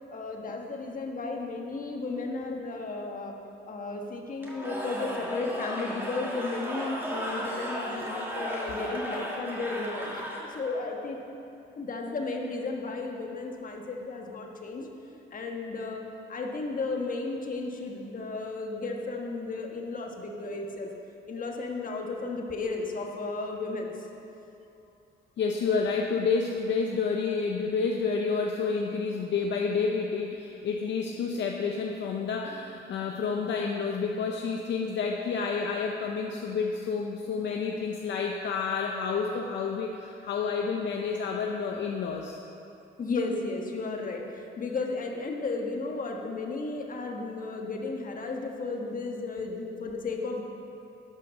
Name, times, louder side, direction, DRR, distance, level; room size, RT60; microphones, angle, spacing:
voice 1, 0.1-3.3 3.7-11.2 11.8-14.9 15.3-16.0 16.3-20.9 21.3-23.9 43.0-44.2 44.6-50.4, left 3 dB, 45° left, 1 dB, 1.4 m, -34 dB
Cheering / Crowd, 4.4-10.8, equal, 10° right, 2.0 m, -35 dB
voice 2, 25.4-42.4, left 5 dB, 65° left, 1 dB, 0.7 m, -29 dB
11.5 x 5.7 x 6.4 m, 2.7 s
cardioid pair, 90°, 20 cm